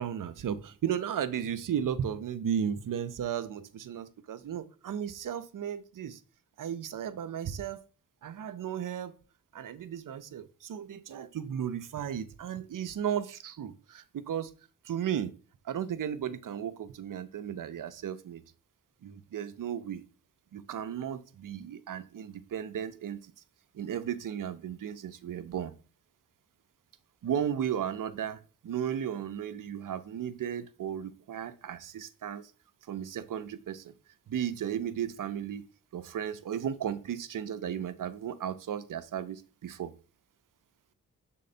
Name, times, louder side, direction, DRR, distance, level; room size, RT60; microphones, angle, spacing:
voice 1, 0.0-6.2 6.6-7.8 8.2-9.2 9.5-14.5 14.8-15.3 15.6-18.4 19.0-20.0 20.5-23.2 23.7-25.7 27.2-32.5 32.9-33.9 34.3-39.9, right 9 dB, 60° right, 0.7 m, -35 dB
6.4 x 3.8 x 4.2 m
supercardioid pair, 40°, 36 cm